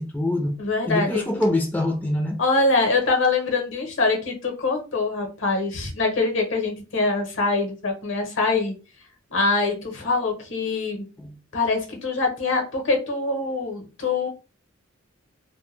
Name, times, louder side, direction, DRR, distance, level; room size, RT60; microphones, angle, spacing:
voice 1, 0.0-0.5 0.9-2.4 11.2-11.3, left 1 dB, 10° left, 0.4 m, -24 dB
voice 2, 0.6-1.2 2.4-8.8 9.3-11.1 11.5-14.3, left 3 dB, 70° left, 0.9 m, -24 dB
2.1 x 2.1 x 3.1 m
head